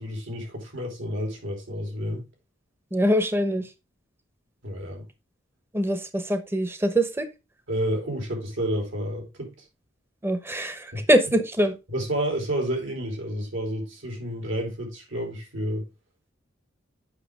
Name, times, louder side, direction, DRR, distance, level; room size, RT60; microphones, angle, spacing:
voice 1, 0.0-2.2 4.6-5.0 7.7-9.5 10.9-11.1 11.9-15.9, equal, 75° right, 3.1 m, -30 dB
voice 2, 2.9-3.7 5.7-7.3 10.2-11.7, equal, 10° right, 0.8 m, -23 dB
8.3 x 5.8 x 3.5 m
head